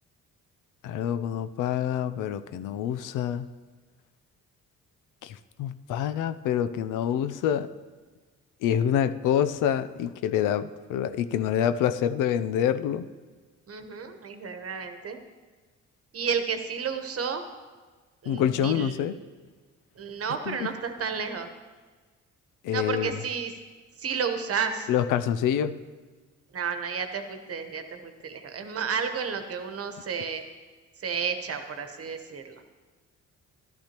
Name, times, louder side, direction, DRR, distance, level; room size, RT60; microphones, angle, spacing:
voice 1, 0.8-3.5 5.2-7.7 8.6-13.1 18.3-19.2 20.5-20.7 22.6-23.1 24.9-25.8, left 9 dB, 90° left, 12 dB, 0.5 m, -26 dB
voice 2, 13.7-15.2 16.1-17.4 18.2-19.0 20.0-21.5 22.7-23.5 24.0-24.9 26.5-30.4 31.0-32.6, right 6 dB, 50° right, 7 dB, 1.1 m, -31 dB
12.0 x 11.5 x 3.0 m, 1.4 s
cardioid pair, 90°, 30 cm